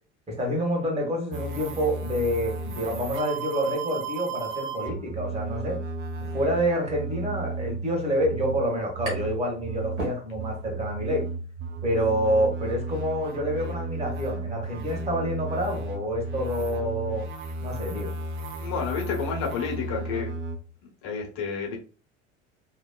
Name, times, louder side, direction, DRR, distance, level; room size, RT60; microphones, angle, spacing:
voice 1, 0.3-5.8 6.3-11.2 11.8-17.3 17.6-18.1, equal, 20° right, 0 dB, 1.6 m, -27 dB
sound 1, 1.3-20.6, right 3 dB, 35° right, 0.7 m, -34 dB
sound 2, 9.0-9.4 9.8-10.7, right 1 dB, 85° right, 1.3 m, -37 dB
voice 2, 18.6-20.3 21.0-21.8, left 5 dB, 55° left, 1 dB, 1.3 m, -30 dB
3.2 x 2.7 x 2.3 m, 0.36 s
figure-of-eight pair, 70°, 34 cm